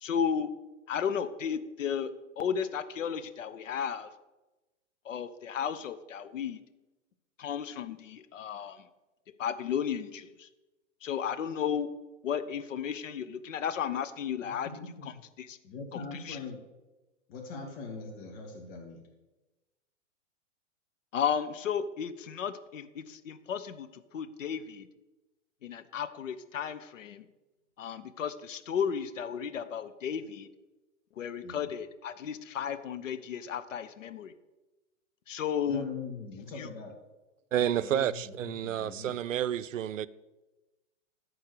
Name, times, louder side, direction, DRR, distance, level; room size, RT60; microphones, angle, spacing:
voice 1, 0.0-0.5 0.9-4.1 5.0-6.6 7.4-8.8 9.4-10.5 11.0-11.9 12.2-14.7 15.0-15.1 15.4-15.6 15.9-16.4 21.1-24.9 25.6-27.3 27.8-30.5 31.2-34.3 35.3-35.8 36.6-36.7, left 7 dB, 75° left, 0.9 m, -34 dB
voice 2, 14.4-15.2 15.6-16.6 17.3-19.0 31.4-31.6 35.7-36.9 37.5-39.1, left 4 dB, 50° left, 2.3 m, -42 dB
voice 3, 37.5-40.1, right 10 dB, 75° right, 0.6 m, -30 dB
14.0 x 4.6 x 6.7 m
hypercardioid pair, 125°, 39 cm